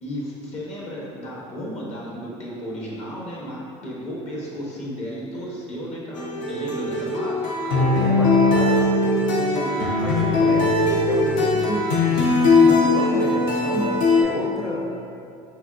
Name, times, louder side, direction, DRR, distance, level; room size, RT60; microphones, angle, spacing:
voice 1, 0.0-7.4, equal, 50° left, -4 dB, 0.9 m, -34 dB
sound 1, 6.2-14.2, left 3 dB, 65° left, 0.6 m, -20 dB
voice 2, 7.7-8.8 9.3-14.9, equal, ahead, -6 dB, 0.5 m, -31 dB
3.4 x 2.9 x 2.4 m, 2.5 s
supercardioid pair, 90°, 15 cm